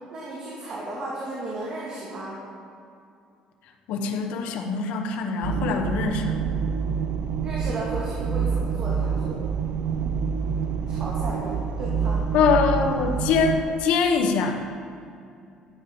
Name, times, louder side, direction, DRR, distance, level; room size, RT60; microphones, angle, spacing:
voice 1, 0.1-2.4 7.4-9.4 10.9-12.3, right 2 dB, 45° right, -5 dB, 2.5 m, -34 dB
voice 2, 3.9-6.4 12.3-14.6, left 5 dB, 80° left, 4 dB, 1.3 m, -23 dB
sound 1, 5.4-13.6, right 6 dB, 65° right, 0.7 m, -27 dB
13.5 x 8.6 x 5.5 m, 2.5 s
cardioid pair, 130°, 2 cm